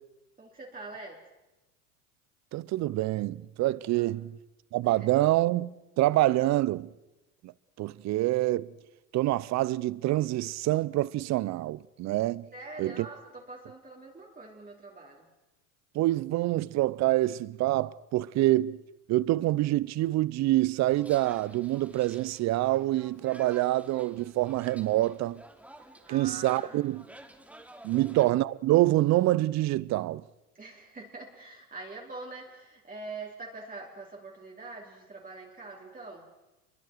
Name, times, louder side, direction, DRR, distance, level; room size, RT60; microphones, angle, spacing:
voice 1, 0.4-1.3 3.9-4.1 4.8-5.1 12.5-15.3 26.1-27.0 27.9-28.1 30.5-36.3, right 3 dB, 20° right, 4.0 m, -44 dB
voice 2, 2.5-4.3 4.7-6.9 7.4-7.5 7.8-8.7 9.1-12.5 12.8-13.1 15.9-18.8 19.1-25.4 26.1-27.0 27.8-30.2, right 16 dB, 40° right, 0.7 m, -26 dB
sound 1, 20.9-28.3, right 1 dB, 5° right, 2.8 m, -52 dB
29.0 x 23.0 x 4.7 m
hypercardioid pair, 85°, 44 cm